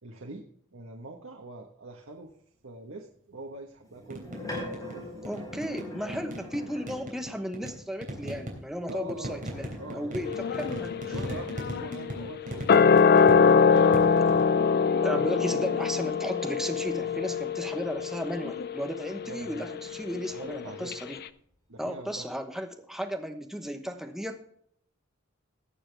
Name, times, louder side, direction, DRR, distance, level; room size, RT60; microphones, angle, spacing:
voice 1, 0.0-2.3 2.6-5.3 8.9-9.5 9.8-10.6 11.0-14.3 19.2-19.7 20.3-21.1 21.7-22.3, right 2 dB, 75° right, 1 dB, 1.3 m, -44 dB
sound 1, 3.9-7.2 9.1-11.5 13.4-18.6 19.2-20.9, left 1 dB, 20° left, 4.7 m, -45 dB
sound 2, 4.1-4.9 5.2-6.6 6.9-14.5, equal, 40° right, 3.3 m, -38 dB
voice 2, 5.2-9.7 9.9-10.9 15.0-21.2 21.8-24.4, equal, ahead, 5 dB, 1.1 m, -35 dB
sound 3, 10.3-20.6 20.9-21.0, left 5 dB, 50° left, 0.5 m, -24 dB
18.5 x 6.9 x 3.4 m, 0.66 s
head